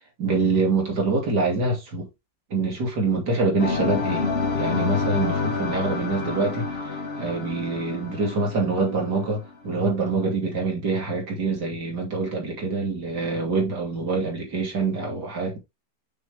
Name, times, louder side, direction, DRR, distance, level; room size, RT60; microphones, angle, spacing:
voice 1, 0.2-2.1 2.5-4.3 4.5-6.7 7.2-15.6, right 3 dB, 70° right, 3.0 m, -25 dB
sound 1, 3.6-9.5, left 4 dB, 40° left, 1.7 m, -28 dB
6.4 x 5.8 x 3.3 m
omnidirectional pair, 1.9 m